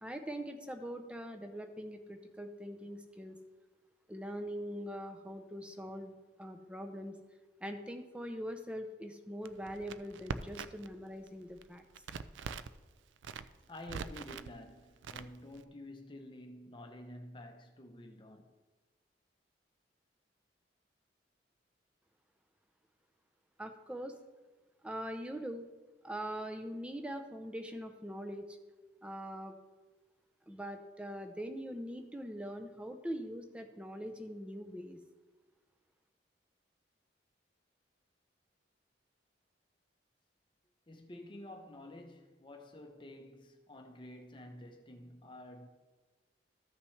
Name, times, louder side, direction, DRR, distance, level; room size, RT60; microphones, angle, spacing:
voice 1, 0.0-3.4 4.1-7.1 7.6-11.8 23.6-24.2 24.8-25.7 26.0-28.6 29.0-29.5 30.5-35.0, equal, 5° right, 0.6 m, -42 dB
Crackle, 9.5-10.9 11.2-12.8 13.2-14.5 15.0-15.6, right 5 dB, 90° right, 0.4 m, -43 dB
voice 2, 13.7-18.5 40.9-45.7, left 1 dB, 25° left, 0.7 m, -50 dB
14.0 x 5.8 x 3.3 m
head